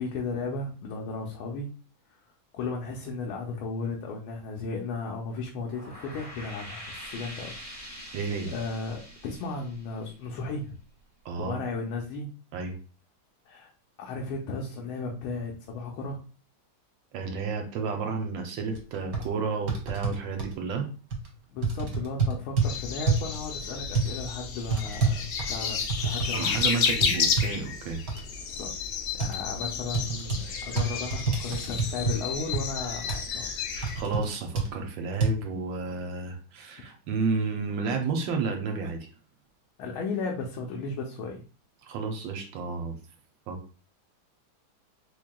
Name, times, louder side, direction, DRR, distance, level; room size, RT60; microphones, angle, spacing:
voice 1, 0.0-1.7 2.5-7.5 8.0-8.2 8.5-10.8 11.4-12.3 13.5-13.7 14.0-16.2 21.5-25.2 25.5-26.6 28.5-28.7 29.1-33.5 39.8-41.4, left 3 dB, 85° left, 0 dB, 1.5 m, -35 dB
sound 1, 5.5-10.8, equal, 15° left, 0.5 m, -44 dB
voice 2, 8.1-8.5 11.2-11.6 12.5-12.8 17.1-20.9 26.3-28.1 33.7-39.1 41.8-42.9 43.5-43.6, right 4 dB, 75° right, 4 dB, 1.3 m, -31 dB
sound 2, 18.7-18.8 19.1-19.2 19.7-20.5 21.1-21.3 21.6-22.7 23.1-23.3 23.9-24.1 24.7-26.3 26.6-26.7 27.0-27.5 28.1-28.2 29.2-29.4 29.9-30.4 30.8-32.2 32.5-32.6 33.1-33.2 33.8-34.3 34.5-34.7 35.2-35.3, right 4 dB, 55° right, 1.3 m, -27 dB
sound 3, 22.6-34.0, left 6 dB, 70° left, 1.0 m, -31 dB
4.5 x 3.1 x 2.2 m, 0.38 s
omnidirectional pair, 2.2 m